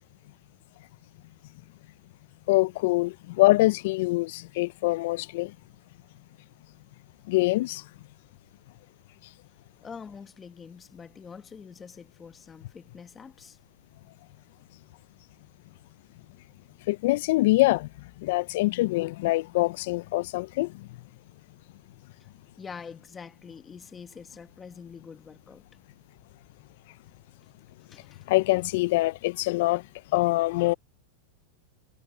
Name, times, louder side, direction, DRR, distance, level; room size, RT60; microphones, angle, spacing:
voice 1, 2.5-5.5 7.3-7.8 16.9-17.9 18.2-20.7 28.3-29.8 30.1-30.7, left 20 dB, 65° left, 0.4 m, -24 dB
voice 2, 9.8-13.6 22.6-25.7 27.8-28.3, left 6 dB, 20° left, 1.4 m, -45 dB
hypercardioid pair, 125°, 0 cm